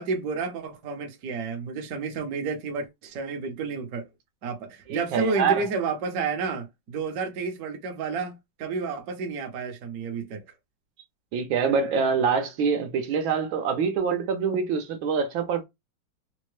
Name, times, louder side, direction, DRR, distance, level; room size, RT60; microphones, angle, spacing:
voice 1, 0.0-4.1 4.4-10.4, right 4 dB, 55° right, 1.1 m, -31 dB
voice 2, 4.9-5.7 11.3-15.6, right 6 dB, 75° right, 1.5 m, -25 dB
4.4 x 2.1 x 3.1 m
omnidirectional pair, 2.2 m